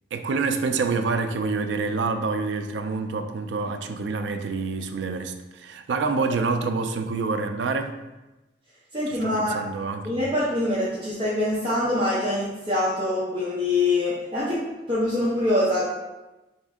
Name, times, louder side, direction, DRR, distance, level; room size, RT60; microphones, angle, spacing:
voice 1, 0.1-7.9 9.1-10.0, right 4 dB, 85° right, 7 dB, 0.4 m, -27 dB
voice 2, 8.9-9.6 10.0-15.8, left 1 dB, 30° right, -9 dB, 0.8 m, -24 dB
4.1 x 2.6 x 3.5 m, 1.1 s
head